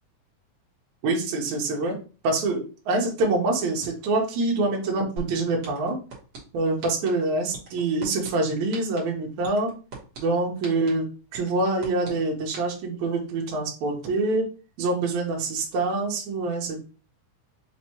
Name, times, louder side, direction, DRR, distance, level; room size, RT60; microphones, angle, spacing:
voice 1, 1.0-2.0 2.2-6.0 6.5-9.7 10.2-11.1 11.3-14.5 14.8-16.8, right 2 dB, 70° right, -1 dB, 2.2 m, -25 dB
sound 1, 5.2-5.3 5.6-6.4 6.8-7.1 7.5-8.3 8.7-9.0 9.4-10.2 10.6-10.9 11.3-12.1 12.5-12.6, right 3 dB, 55° right, 2.0 m, -38 dB
5.6 x 2.6 x 2.9 m, 0.35 s
omnidirectional pair, 3.6 m